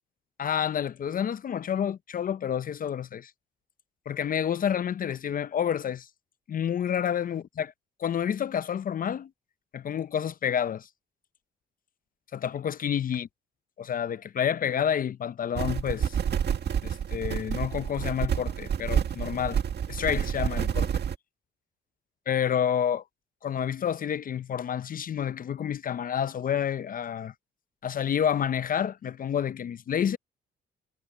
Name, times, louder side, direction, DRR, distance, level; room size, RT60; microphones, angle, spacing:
voice 1, 0.4-3.3 4.1-6.1 6.5-7.7 8.0-9.3 9.7-10.9 12.3-13.3 13.8-16.2 16.8-19.6 19.9-20.9 22.3-23.0 23.4-27.3 27.8-30.2, left 9 dB, 45° left, 0.6 m, -29 dB
sound 1, 15.6-21.2, right 8 dB, 55° right, 1.8 m, -28 dB
cardioid pair, 90°, 20 cm